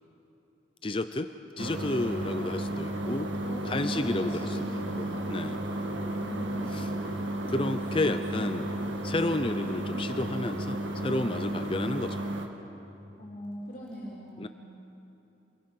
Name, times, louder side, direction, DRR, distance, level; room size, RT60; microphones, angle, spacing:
voice 1, 0.8-1.3 1.6-3.3 3.7-4.6 5.0-5.6 6.7-6.9 7.5-8.7 9.0-12.2 14.4-14.5, left 2 dB, 30° left, 9 dB, 0.5 m, -31 dB
sound 1, 1.6-12.5, right 1 dB, 80° right, 1.9 m, -33 dB
voice 2, 3.4-5.3 6.2-6.9 8.0-8.6 13.2-14.5, equal, 45° left, -5 dB, 3.7 m, -41 dB
28.5 x 21.5 x 6.0 m, 3.0 s
head